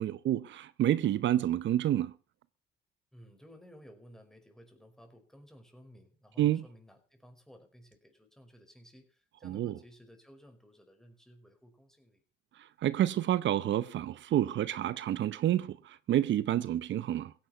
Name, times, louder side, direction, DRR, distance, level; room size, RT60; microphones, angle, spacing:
voice 1, 0.0-2.1 6.4-6.6 9.4-9.7 12.6-17.3, right 12 dB, 70° right, 0.8 m, -29 dB
voice 2, 3.1-12.2, equal, ahead, 5.3 m, -56 dB
16.0 x 10.5 x 7.9 m
cardioid pair, 90°, 20 cm